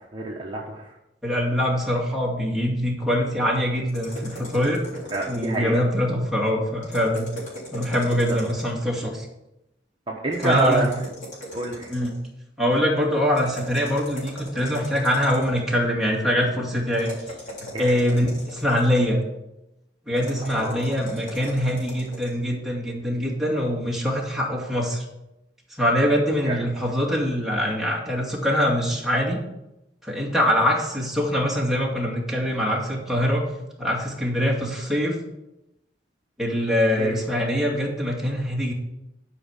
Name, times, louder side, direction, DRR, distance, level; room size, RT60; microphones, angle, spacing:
voice 1, 0.1-0.9 5.1-5.8 8.3-8.4 10.1-11.1 11.5-11.9 17.7-17.9 20.5-20.9 26.4-26.6 37.0-37.2, right 3 dB, 30° right, -2 dB, 1.2 m, -27 dB
voice 2, 1.2-4.8 5.3-7.3 7.7-9.3 10.4-10.9 11.9-12.1 12.6-17.1 17.6-19.2 20.1-25.0 25.8-29.4 30.0-33.4 33.8-35.2 36.4-38.7, equal, ahead, -4 dB, 2.3 m, -23 dB
sound 1, 3.9-5.8 6.8-8.9 10.3-12.3 13.3-15.7 16.9-19.2 20.2-22.4, equal, 45° left, 3.8 m, -39 dB
12.0 x 5.3 x 5.9 m, 0.90 s
head